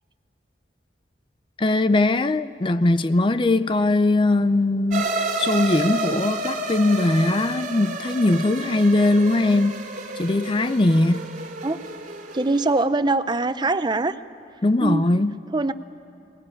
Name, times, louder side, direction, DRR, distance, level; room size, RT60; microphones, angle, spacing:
voice 1, 1.6-5.1 5.4-9.8 10.2-11.3 14.6-15.3, left 2 dB, 30° left, 0.5 m, -20 dB
sound 1, 4.9-12.8, right 2 dB, 45° right, 2.4 m, -30 dB
voice 2, 12.3-14.2 14.8-15.1 15.5-15.7, right 2 dB, 25° right, 0.6 m, -22 dB
21.5 x 19.5 x 9.8 m
head